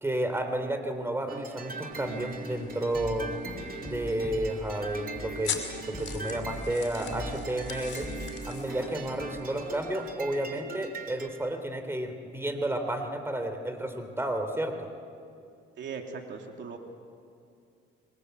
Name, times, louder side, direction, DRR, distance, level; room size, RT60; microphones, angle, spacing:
voice 1, 0.0-3.3 3.8-8.1 8.4-14.9, right 1 dB, 10° right, 7 dB, 3.4 m, -32 dB
sound 1, 1.3-11.3, right 4 dB, 45° right, 2.8 m, -41 dB
sound 2, 1.9-10.1, left 7 dB, 65° left, 4.8 m, -42 dB
sound 3, 2.7-4.7 5.1-6.9 7.1-9.2, left 1 dB, 10° left, 7.9 m, -42 dB
voice 2, 15.8-16.8, right 5 dB, 65° right, 3 dB, 3.0 m, -39 dB
26.0 x 24.5 x 8.2 m, 2.4 s
cardioid pair, 90°, 20 cm